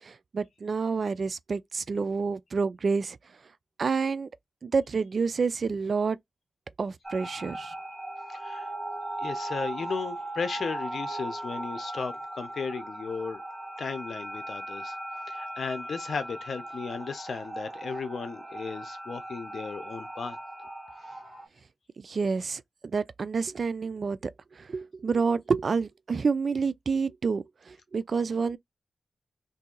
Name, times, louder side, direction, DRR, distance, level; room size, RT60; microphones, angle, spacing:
voice 1, 0.0-3.2 3.8-4.3 4.6-6.2 6.8-7.7 22.0-24.3 24.6-28.6, right 5 dB, 60° right, 0.4 m, -28 dB
sound 1, 7.0-21.5, right 1 dB, 10° right, 1.3 m, -38 dB
voice 2, 8.3-8.7 9.2-13.4 13.8-15.0 15.3-20.4 21.0-21.1, left 5 dB, 75° left, 0.7 m, -35 dB
2.7 x 2.7 x 3.8 m
cardioid pair, 65°, 0 cm